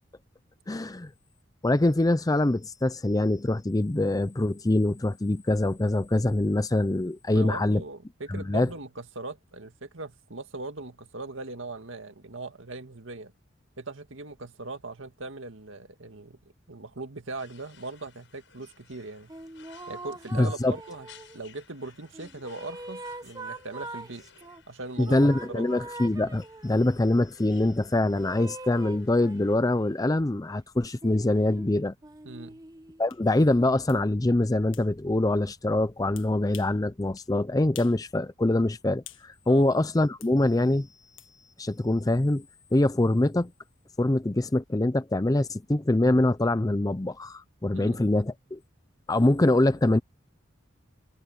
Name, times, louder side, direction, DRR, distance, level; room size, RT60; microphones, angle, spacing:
voice 1, 0.7-1.1 1.6-7.8 8.3-8.7 20.3-20.7 25.0-31.9 33.0-40.9 41.6-42.4 42.7-43.5 44.0-48.6 49.1-50.0, left 1 dB, 20° left, 0.5 m, -24 dB
voice 2, 7.3-13.3 13.8-16.4 16.7-19.3 19.9-21.1 21.3-24.2 24.7-25.2 25.5-25.7 32.2-32.6 39.5-39.7 47.7-48.1, right 3 dB, 85° right, 1.9 m, -40 dB
sound 1, 17.4-29.6, left 7 dB, 70° left, 7.0 m, -57 dB
sound 2, 19.3-21.5 22.1-24.6 25.1-26.9 28.1-30.0 30.8-33.1, right 2 dB, 20° right, 0.8 m, -43 dB
sound 3, 33.1-33.2 33.9-34.0 34.7-34.9 36.2-36.8 37.2-37.3 37.7-38.0 38.4-39.3 40.2-40.4 41.2-41.3, left 13 dB, 85° left, 1.7 m, -47 dB
head